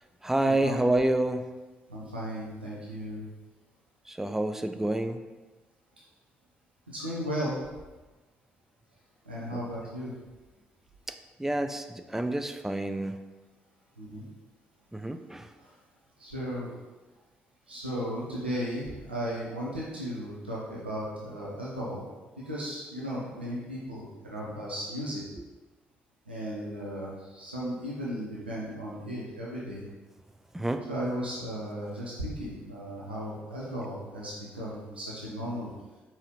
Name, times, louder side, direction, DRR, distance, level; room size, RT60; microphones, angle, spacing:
voice 1, 0.2-1.5 4.1-5.2 9.5-9.6 11.4-13.2 14.9-15.5 30.5-30.8, right 1 dB, 5° right, 8 dB, 0.3 m, -28 dB
voice 2, 1.9-3.2 6.9-7.6 9.3-10.1 14.0-14.2 15.6-15.7 16.2-16.7 17.7-22.0 22.5-25.2 26.3-29.8 30.9-35.7, equal, 90° right, -6 dB, 0.6 m, -35 dB
4.6 x 2.8 x 3.0 m, 1.2 s
figure-of-eight pair, 40°, 5 cm